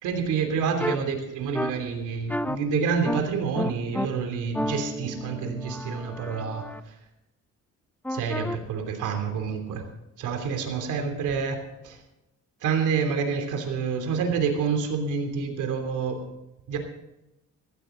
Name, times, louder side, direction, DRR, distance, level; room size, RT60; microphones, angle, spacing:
voice 1, 0.0-7.0 8.1-9.8 10.2-12.0 12.6-16.2 16.7-16.8, right 6 dB, 90° right, 4 dB, 3.1 m, -28 dB
sound 1, 0.8-1.0 1.5-1.7 2.3-2.6 3.0-3.2 3.5-4.1 4.5-6.8 8.0-8.6, equal, 5° left, 0.8 m, -31 dB
16.0 x 15.0 x 3.9 m, 0.90 s
cardioid pair, 90°, 30 cm